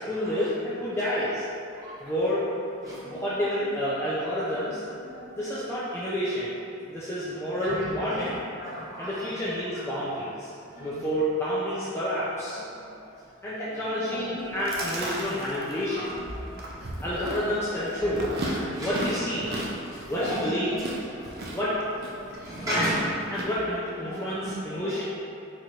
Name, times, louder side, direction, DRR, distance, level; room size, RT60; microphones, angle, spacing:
voice 1, 0.0-1.5 2.0-2.4 3.1-4.8 5.4-6.5 6.9-8.4 9.0-10.5 10.8-12.6 13.4-16.0 17.0-18.3 18.8-19.5 20.1-20.7 21.5-21.8 22.6-22.9 23.3-25.0, equal, 15° left, -10 dB, 0.5 m, -29 dB
voice 2, 1.7-2.1 2.8-3.3 4.5-5.7 7.6-8.3 8.6-9.4 9.7-9.9 10.6-11.1 12.5-13.1 13.7-16.5 17.2-17.4 18.0-19.2 19.4-20.7 21.1-21.5 22.2-23.0 24.0-25.0, equal, 15° right, -10 dB, 1.2 m, -37 dB
Chewing mastication, 14.4-23.4, right 1 dB, 45° right, 0.5 m, -36 dB
4.5 x 2.5 x 4.4 m, 2.6 s
head